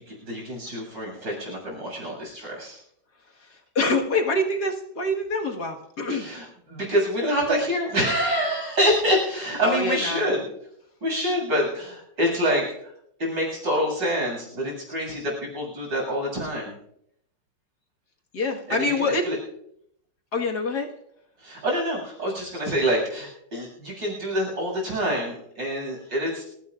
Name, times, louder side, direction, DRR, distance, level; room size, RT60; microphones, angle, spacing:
voice 1, 0.0-2.8 6.1-10.4 11.0-12.9 13.2-16.7 18.7-19.4 21.4-26.4, equal, 85° right, -2 dB, 8.5 m, -26 dB
voice 2, 3.4-6.3 9.6-10.2 18.3-19.3 20.3-20.9, left 2 dB, 60° left, 1 dB, 2.3 m, -25 dB
29.0 x 17.0 x 2.5 m, 0.74 s
omnidirectional pair, 1.9 m